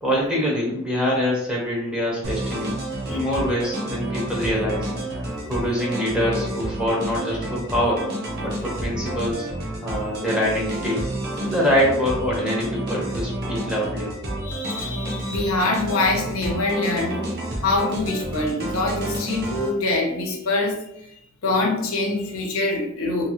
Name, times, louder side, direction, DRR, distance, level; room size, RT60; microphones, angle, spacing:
voice 1, 0.0-2.8 3.1-4.9 5.2-8.0 8.4-9.5 9.8-11.1 11.4-14.1, equal, 5° right, -5 dB, 0.8 m, -24 dB
sound 1, 2.2-19.7, right 1 dB, 50° right, 0.7 m, -30 dB
voice 2, 14.4-17.2 17.6-20.8 21.1-23.3, left 2 dB, 75° left, 1 dB, 0.7 m, -24 dB
2.7 x 2.6 x 2.9 m, 0.79 s
head